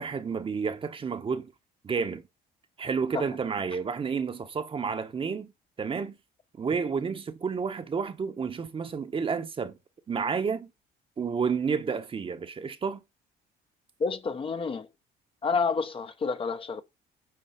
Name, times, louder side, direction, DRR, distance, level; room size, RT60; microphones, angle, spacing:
voice 1, 0.0-1.5 1.8-2.3 2.8-5.5 5.8-6.2 6.6-9.8 10.1-10.7 11.2-13.0, right 5 dB, 30° right, 1.1 m, -30 dB
voice 2, 14.0-14.9 15.4-16.8, left 4 dB, 30° left, 1.0 m, -29 dB
9.6 x 3.9 x 6.9 m
cardioid pair, 110°, 17 cm